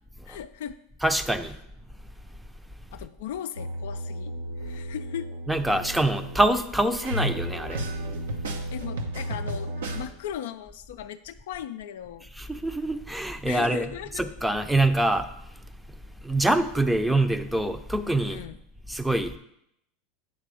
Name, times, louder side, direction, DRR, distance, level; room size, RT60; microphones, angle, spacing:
voice 1, 0.3-0.8 2.9-5.3 8.7-12.3 13.5-14.3 18.3-18.6, left 10 dB, 70° left, 0.4 m, -37 dB
voice 2, 1.0-1.6 5.5-7.8 12.4-13.9 14.2-15.3 16.2-18.4 18.9-19.4, right 1 dB, 5° right, 0.6 m, -25 dB
sound 1, 3.6-10.1, right 1 dB, 80° right, 0.8 m, -33 dB
8.5 x 3.3 x 6.3 m
hypercardioid pair, 90°, 0 cm